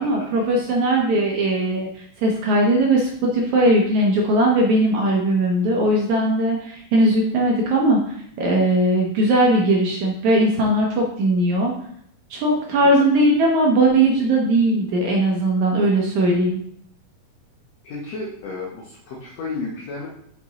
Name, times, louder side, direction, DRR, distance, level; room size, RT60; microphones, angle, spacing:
voice 1, 0.0-8.0 8.4-11.7 12.3-16.6, right 1 dB, 70° right, 0 dB, 1.9 m, -19 dB
voice 2, 17.8-20.1, left 3 dB, 65° left, -3 dB, 1.8 m, -33 dB
6.1 x 5.2 x 4.1 m, 0.68 s
omnidirectional pair, 4.1 m